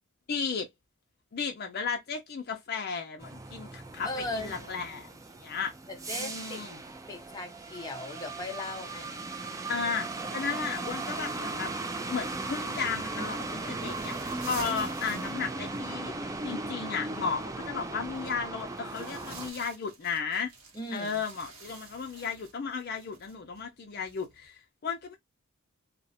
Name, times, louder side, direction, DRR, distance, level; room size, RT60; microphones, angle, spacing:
voice 1, 0.3-0.7 1.3-5.1 5.4-5.7 6.1-6.8 9.7-11.7 12.1-20.5 20.9-25.2, left 5 dB, 50° left, 0.5 m, -34 dB
sound 1, 3.2-19.5, right 3 dB, 15° right, 0.3 m, -37 dB
voice 2, 4.0-4.6 5.9-6.7 7.1-9.2 20.7-21.2, left 2 dB, 20° left, 0.7 m, -38 dB
sound 2, 5.9-24.5, right 3 dB, 85° right, 1.0 m, -51 dB
2.4 x 2.0 x 2.6 m
head